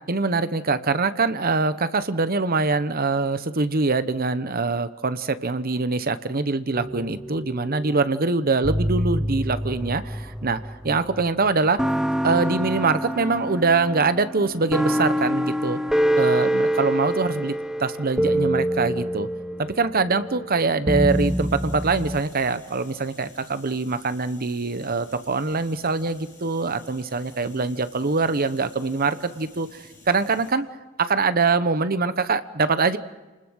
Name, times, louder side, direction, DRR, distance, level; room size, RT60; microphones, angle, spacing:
voice 1, 0.1-11.8 12.2-15.8 16.2-17.5 17.8-19.3 19.6-30.7 31.0-33.0, right 4 dB, 45° right, 12 dB, 1.0 m, -23 dB
sound 1, 6.7-7.9 8.6-11.2 11.8-22.2, equal, 5° right, 0.8 m, -26 dB
sound 2, 21.1-30.5, left 2 dB, 15° left, 7.9 m, -51 dB
29.0 x 20.0 x 6.4 m, 1.2 s
head